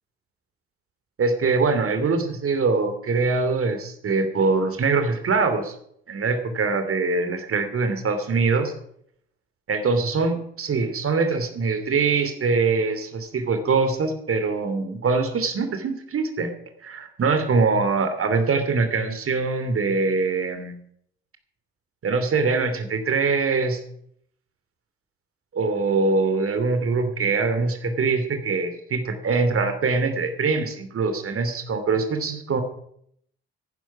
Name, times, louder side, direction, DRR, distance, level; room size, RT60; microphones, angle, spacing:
voice 1, 1.2-5.7 6.1-8.7 9.7-16.5 16.8-20.8 22.0-23.8 25.5-32.6, right 4 dB, 50° right, 8 dB, 2.8 m, -23 dB
15.0 x 11.0 x 6.0 m, 0.69 s
hypercardioid pair, 45°, 29 cm